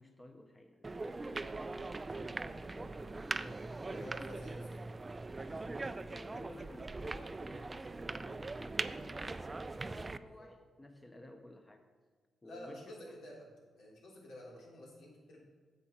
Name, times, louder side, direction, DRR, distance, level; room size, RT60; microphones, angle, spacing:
voice 1, 0.0-4.1 4.6-4.7 5.5-11.9 12.4-13.2, left 1 dB, 10° left, 5 dB, 0.7 m, -54 dB
sound 1, 0.8-10.2, right 3 dB, 20° right, 0.3 m, -41 dB
voice 2, 3.9-4.9 10.3-10.5 12.4-13.5 13.8-15.4, equal, 85° left, -4 dB, 3.6 m, -51 dB
10.5 x 7.3 x 5.9 m, 1.5 s
cardioid pair, 140°, 0 cm